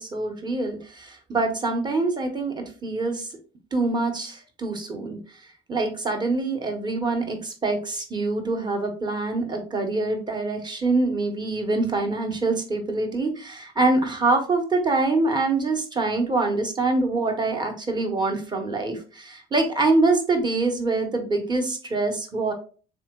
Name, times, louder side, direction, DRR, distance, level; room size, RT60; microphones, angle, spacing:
voice 1, 0.0-3.3 3.7-5.2 5.7-22.5, right 3 dB, 25° right, 4 dB, 1.1 m, -25 dB
3.9 x 3.1 x 3.6 m, 0.38 s
cardioid pair, 110°, 17 cm